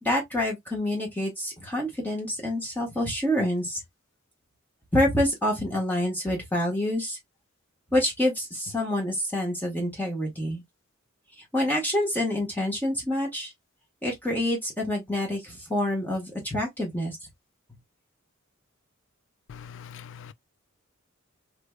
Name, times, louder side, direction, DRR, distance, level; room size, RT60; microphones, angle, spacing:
voice 1, 0.0-3.8 4.9-7.2 7.9-10.6 11.5-13.5 14.0-17.2, left 1 dB, 10° left, 1.3 m, -27 dB
voice 2, 19.5-20.3, left 7 dB, 65° left, 0.4 m, -43 dB
3.2 x 3.1 x 2.2 m
head